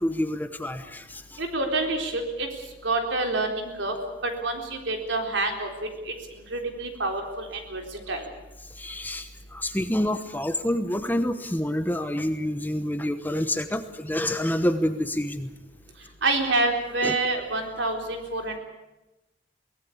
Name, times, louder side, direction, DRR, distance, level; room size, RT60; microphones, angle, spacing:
voice 1, 0.0-1.4 8.7-15.5 17.0-17.1, left 1 dB, 10° left, 9 dB, 1.0 m, -28 dB
voice 2, 1.4-2.5 2.8-3.9 4.2-5.7 6.1-6.2 6.5-8.2 16.2-18.6, right 2 dB, 75° right, 3 dB, 3.9 m, -27 dB
23.0 x 18.0 x 8.6 m, 1.0 s
head